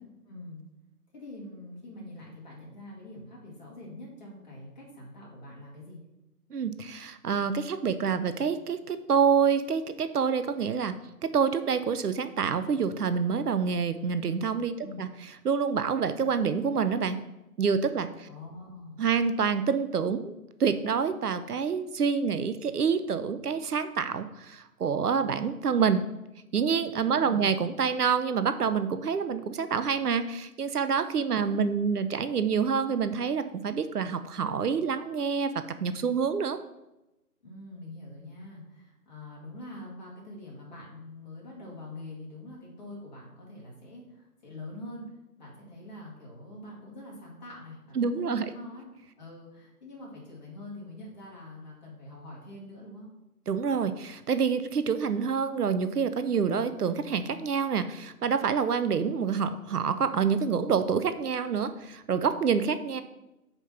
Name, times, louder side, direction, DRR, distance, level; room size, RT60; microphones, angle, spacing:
voice 1, 0.3-0.6 1.1-6.0 14.8-15.0 18.3-19.0 27.1-27.5 31.4-31.6 37.4-45.0 45.4-48.9 49.1-53.1, left 1 dB, 30° left, -4 dB, 1.9 m, -44 dB
voice 2, 6.5-10.9 11.2-15.1 15.4-17.2 17.6-18.3 19.0-20.3 20.6-26.1 26.5-36.6 48.0-48.5 53.5-63.0, right 6 dB, 70° right, 11 dB, 0.7 m, -27 dB
5.1 x 4.5 x 5.7 m, 0.95 s
figure-of-eight pair, 160°, 47 cm